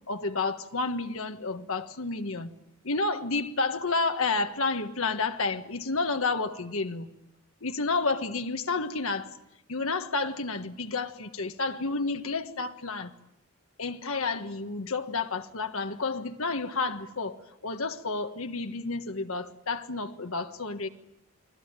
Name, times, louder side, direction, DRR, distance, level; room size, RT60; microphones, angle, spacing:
voice 1, 0.1-2.5 2.8-7.1 7.6-9.4 9.7-13.1 13.8-20.9, left 3 dB, 70° left, 7 dB, 1.5 m, -30 dB
30.0 x 21.0 x 9.0 m, 0.83 s
head